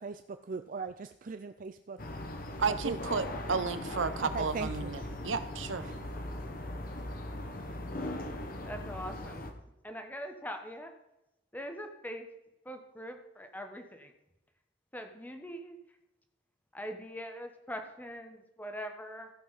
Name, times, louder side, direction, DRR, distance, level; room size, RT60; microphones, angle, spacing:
voice 1, 0.0-2.0 2.7-3.0 4.2-4.9 5.8-6.0 6.9-7.0, right 4 dB, 45° right, 9 dB, 0.4 m, -39 dB
sound 1, 2.0-9.5, left 1 dB, 50° left, 1.2 m, -39 dB
voice 2, 2.6-5.9, right 5 dB, 85° right, 11 dB, 0.9 m, -32 dB
voice 3, 8.6-9.5 9.8-10.9 11.5-12.3 12.6-14.1 14.9-15.8 16.7-19.3, equal, 10° left, 5 dB, 1.2 m, -42 dB
14.5 x 5.9 x 5.7 m, 0.92 s
head